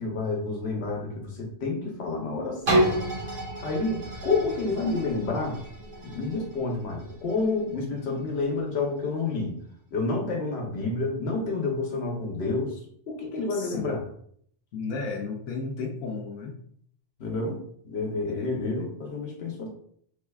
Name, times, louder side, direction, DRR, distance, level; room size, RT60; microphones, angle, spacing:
voice 1, 0.0-3.0 3.6-5.6 6.0-9.5 9.9-12.8 13.1-14.0 17.2-19.7, left 3 dB, 60° left, 0 dB, 1.0 m, -29 dB
sound 1, 2.7-8.4 9.0-9.1, right 1 dB, 90° right, 1.6 m, -30 dB
voice 2, 13.5-13.9 14.7-16.6 18.3-18.6, left 4 dB, 85° left, -1 dB, 1.0 m, -34 dB
3.3 x 3.3 x 2.3 m, 0.63 s
omnidirectional pair, 1.3 m